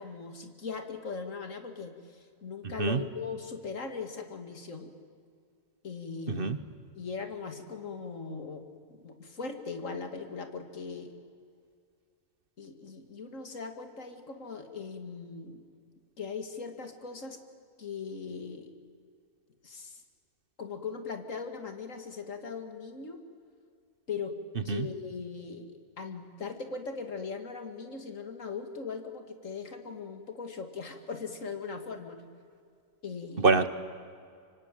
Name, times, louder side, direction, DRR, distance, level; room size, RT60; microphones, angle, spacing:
voice 1, 0.0-4.9 5.8-6.5 7.0-11.2 12.6-15.6 16.2-17.4 17.8-18.7 19.6-20.0 20.6-23.2 24.1-24.4 24.6-25.7 26.0-32.2 33.0-33.5, left 5 dB, 75° left, 7 dB, 2.5 m, -39 dB
voice 2, 2.8-3.0 6.3-6.6 24.7-24.9 33.4-33.7, right 4 dB, 45° right, 13 dB, 1.2 m, -25 dB
24.5 x 24.5 x 9.2 m, 2.2 s
omnidirectional pair, 1.3 m